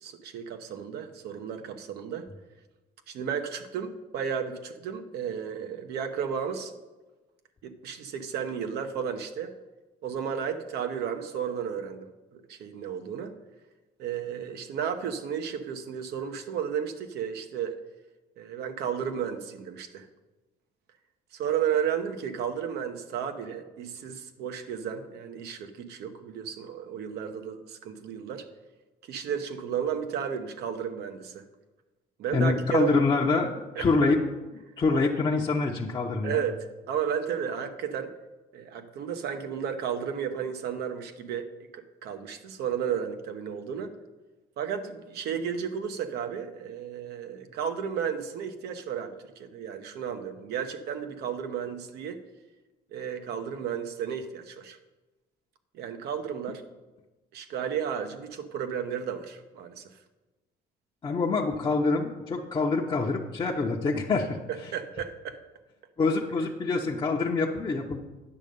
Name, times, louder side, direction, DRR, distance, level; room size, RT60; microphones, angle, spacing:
voice 1, 0.0-2.3 3.1-6.7 7.6-9.5 10.0-13.3 14.0-17.8 18.4-20.0 21.3-28.4 29.1-31.4 32.2-33.0 33.7-33.9 36.2-36.6 36.9-38.1 38.5-41.5 41.7-43.9 44.6-52.2 52.9-54.8 55.7-56.6 57.3-60.0 64.7-65.4, right 8 dB, 75° right, 7 dB, 1.0 m, -33 dB
voice 2, 32.3-33.5 33.8-34.2 34.8-36.4 61.0-64.4 66.0-68.0, left 3 dB, 30° left, -1 dB, 0.8 m, -25 dB
9.7 x 6.4 x 5.3 m, 1.2 s
cardioid pair, 110°, 17 cm